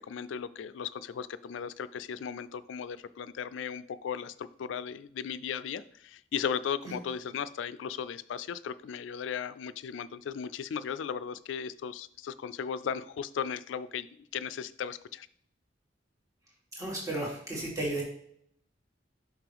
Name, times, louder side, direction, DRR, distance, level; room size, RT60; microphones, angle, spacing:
voice 1, 0.1-14.1 14.3-15.3, left 7 dB, 85° left, 15 dB, 0.3 m, -36 dB
voice 2, 16.8-18.0, right 2 dB, 20° right, -4 dB, 1.9 m, -33 dB
5.9 x 5.5 x 3.4 m, 0.66 s
head